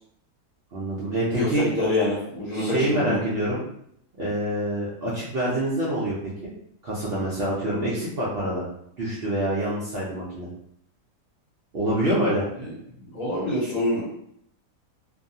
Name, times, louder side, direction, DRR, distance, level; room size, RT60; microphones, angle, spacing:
voice 1, 0.7-1.7 2.5-3.6 4.2-6.5 6.8-8.6 9.0-10.5 11.7-12.5, right 1 dB, 90° right, -7 dB, 0.5 m, -26 dB
voice 2, 1.3-3.2 13.0-14.1, left 1 dB, 60° left, -6 dB, 1.0 m, -26 dB
2.6 x 2.3 x 2.6 m, 0.71 s
omnidirectional pair, 1.8 m